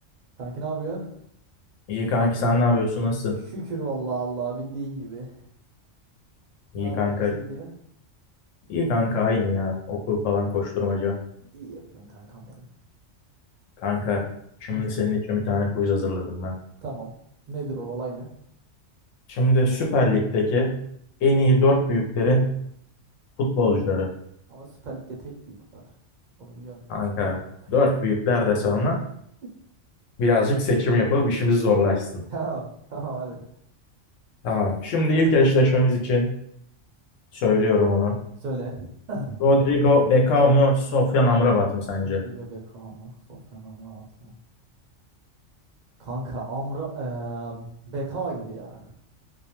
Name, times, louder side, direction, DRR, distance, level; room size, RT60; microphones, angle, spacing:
voice 1, 0.4-1.2 3.4-5.4 6.7-7.7 11.5-12.7 14.7-14.8 16.8-17.1 17.5-18.3 24.5-25.8 26.4-26.8 28.6-28.7 32.3-33.4 38.4-39.4 42.0-44.3 46.0-49.0, right 3 dB, 55° right, -1 dB, 0.5 m, -34 dB
voice 2, 1.9-3.4 6.7-7.3 8.7-11.2 13.8-14.2 14.6-16.5 19.3-20.8 21.2-22.6 23.4-24.1 26.9-27.4 27.7-29.0 30.2-32.1 34.4-36.3 37.3-38.2 39.4-42.2, left 2 dB, 85° left, 1 dB, 0.9 m, -21 dB
2.3 x 2.2 x 2.8 m, 0.70 s
omnidirectional pair, 1.3 m